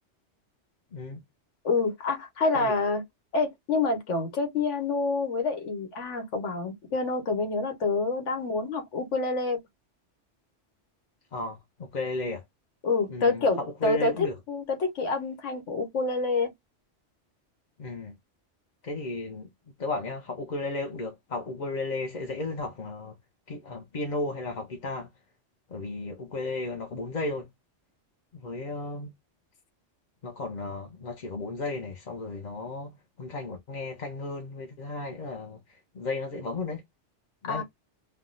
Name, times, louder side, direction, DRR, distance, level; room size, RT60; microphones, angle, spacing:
voice 1, 0.9-1.2 2.5-2.7 11.3-12.4 13.1-14.3 17.8-18.2 18.8-19.5 19.8-23.2 23.5-25.1 25.7-27.5 28.3-29.1 30.2-36.8 37.4-37.6, left 2 dB, 45° left, 0.7 m, -34 dB
voice 2, 1.6-3.0 3.3-9.6 12.8-16.5 37.4-37.6, left 3 dB, 90° left, 1.3 m, -27 dB
3.4 x 2.3 x 2.5 m
omnidirectional pair, 1.2 m